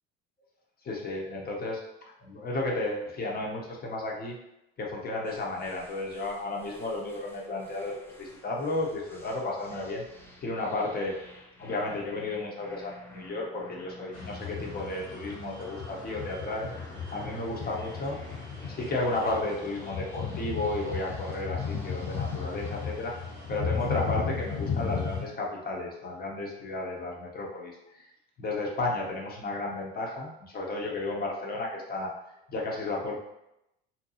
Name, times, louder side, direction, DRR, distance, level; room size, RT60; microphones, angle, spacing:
voice 1, 0.8-1.8 2.2-4.3 4.8-10.0 10.4-11.1 11.6-16.7 17.1-18.2 18.8-23.1 23.5-28.1 28.4-32.1 32.5-33.2, left 2 dB, 30° left, -1 dB, 0.8 m, -33 dB
sound 1, 5.2-22.9, left 1 dB, 5° left, 0.5 m, -50 dB
sound 2, 14.1-25.2, left 6 dB, 70° left, 1.4 m, -35 dB
2.7 x 2.2 x 2.7 m, 0.85 s
hypercardioid pair, 75°, 31 cm